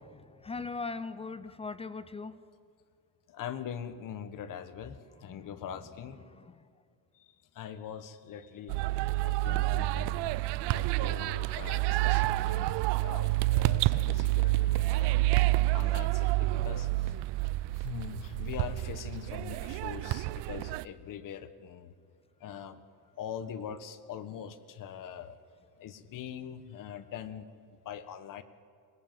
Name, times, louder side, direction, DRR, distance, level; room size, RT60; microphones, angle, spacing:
voice 1, 0.4-2.3 5.3-5.5 9.4-11.2 12.4-13.0, left 4 dB, 15° left, 0.5 m, -41 dB
voice 2, 3.3-6.2 7.1-8.8 9.2-10.2 10.6-15.3 15.7-17.2 17.8-21.9 22.4-22.8 23.2-25.4 25.8-27.5 27.8-28.4, left 8 dB, 50° left, 1.3 m, -42 dB
sound 1, 8.7-20.9, right 19 dB, 75° right, 0.6 m, -28 dB
24.0 x 20.5 x 7.6 m
cardioid pair, 145°, 41 cm